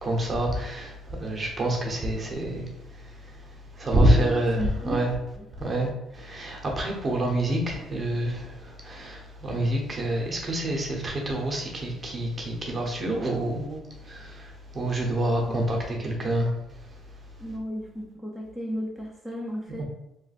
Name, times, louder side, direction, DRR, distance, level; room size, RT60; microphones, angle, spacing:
voice 1, 0.0-5.1 5.6-16.5, right 1 dB, 30° right, 0 dB, 0.8 m, -27 dB
voice 2, 4.0-5.0 5.4-5.5 15.5-15.6 17.4-19.8, equal, 5° left, -2 dB, 0.6 m, -34 dB
3.0 x 2.1 x 4.1 m, 0.89 s
cardioid pair, 105°, 0 cm